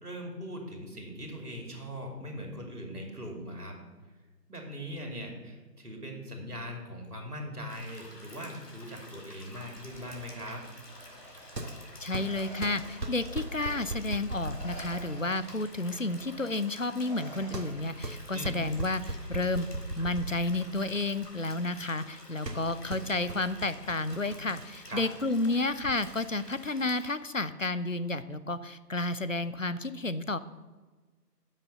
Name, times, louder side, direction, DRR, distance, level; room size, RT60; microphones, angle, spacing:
voice 1, 0.0-3.8 4.5-10.6 18.3-18.5 24.9-25.0, equal, 65° right, 2 dB, 2.7 m, -40 dB
sound 1, 7.7-27.1, left 1 dB, 70° left, 2.6 m, -51 dB
Respiratory sounds, 9.8-14.1 14.5-18.1 19.4-19.6 20.6-21.1 22.3-23.0, equal, 25° left, 1.9 m, -50 dB
sound 2, 9.8-25.9, right 2 dB, 85° right, 1.4 m, -40 dB
voice 2, 12.0-19.7 20.0-30.4, left 2 dB, 55° left, 14 dB, 0.5 m, -31 dB
9.3 x 7.2 x 5.5 m, 1.3 s
figure-of-eight pair, 175°, 49 cm